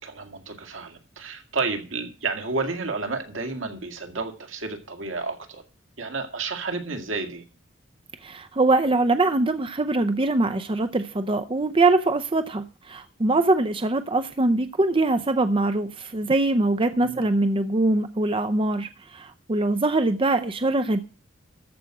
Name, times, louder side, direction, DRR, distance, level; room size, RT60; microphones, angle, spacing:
voice 1, 0.0-5.6 6.0-7.4 17.0-17.3, right 4 dB, 75° right, 2.2 m, -31 dB
voice 2, 8.2-21.0, right 2 dB, 25° right, 0.6 m, -23 dB
14.0 x 5.1 x 7.7 m
head